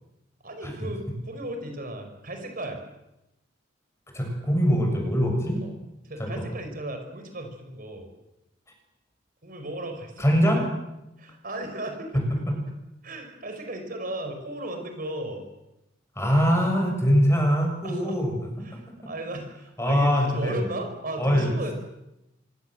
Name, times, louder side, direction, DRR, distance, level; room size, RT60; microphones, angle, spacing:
voice 1, 0.4-2.8 5.6-5.7 6.0-8.1 9.4-10.5 11.2-12.4 13.0-15.4 17.8-18.2 18.6-21.7, right 1 dB, 50° right, 5 dB, 5.0 m, -36 dB
voice 2, 4.1-5.6 6.2-6.5 10.2-10.7 12.1-12.3 16.1-18.3 19.8-20.6 21.2-21.5, equal, 15° left, 3 dB, 6.9 m, -22 dB
26.0 x 24.0 x 7.8 m, 0.90 s
head